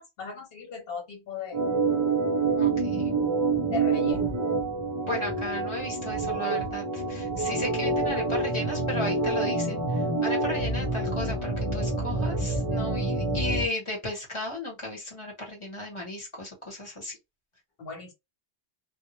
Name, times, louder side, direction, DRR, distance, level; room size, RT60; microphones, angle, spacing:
voice 1, 0.0-1.6 3.7-4.2 17.8-18.1, left 4 dB, 65° left, 1.1 m, -37 dB
Organ, 1.5-13.7, right 3 dB, 35° right, 0.4 m, -27 dB
voice 2, 2.6-3.2 5.0-17.2, left 1 dB, 30° left, 0.9 m, -35 dB
2.1 x 2.0 x 2.9 m
omnidirectional pair, 1.1 m